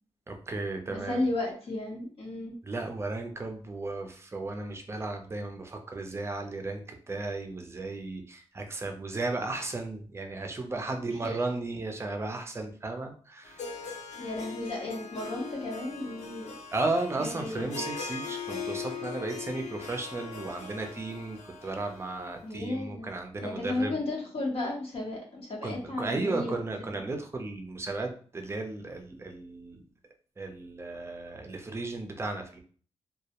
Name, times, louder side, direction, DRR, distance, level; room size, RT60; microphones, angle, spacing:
voice 1, 0.3-1.2 2.6-13.8 16.7-23.9 25.6-29.8 30.4-32.6, right 2 dB, 25° right, 4 dB, 0.4 m, -35 dB
voice 2, 0.9-2.6 11.2-11.4 14.2-16.5 17.2-17.8 22.4-23.1 23.4-27.0, left 2 dB, 55° left, -2 dB, 0.8 m, -34 dB
Harp, 13.4-22.5, left 5 dB, 90° left, 0.5 m, -40 dB
2.2 x 2.0 x 2.8 m, 0.43 s
wide cardioid pair, 105°, 12 cm